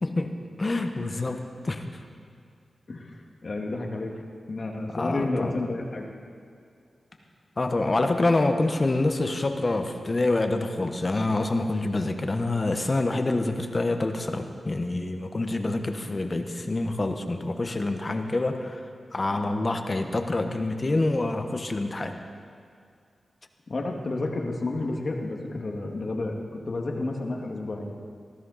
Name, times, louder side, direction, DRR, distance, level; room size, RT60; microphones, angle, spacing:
voice 1, 0.0-0.3 0.6-1.9 4.9-5.6 7.6-18.8 19.1-22.2, left 2 dB, 40° left, 6 dB, 1.2 m, -26 dB
voice 2, 2.9-4.1 4.5-6.0 23.7-27.8, left 2 dB, 55° left, 1 dB, 2.0 m, -31 dB
18.5 x 14.5 x 4.1 m, 2.3 s
cardioid pair, 70°, 0 cm